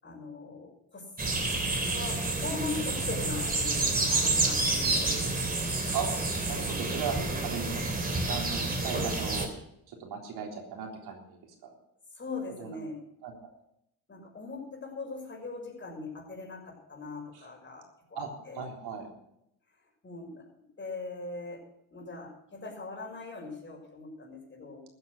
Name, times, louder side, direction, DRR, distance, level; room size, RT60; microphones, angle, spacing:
voice 1, 0.0-1.1 1.9-5.2 12.1-13.0 14.1-18.6 20.0-20.4 20.8-21.6 21.9-24.8, left 3 dB, 30° left, 1 dB, 6.0 m, -40 dB
sound 1, 1.2-9.5, right 2 dB, 20° right, 3.1 m, -29 dB
voice 2, 6.5-7.2 7.4-9.5 9.9-11.7 12.6-12.8 13.2-13.5 17.3-17.4 18.2-19.1, right 6 dB, 70° right, 1 dB, 3.8 m, -37 dB
14.5 x 9.4 x 6.6 m, 0.79 s
cardioid pair, 105°, 40 cm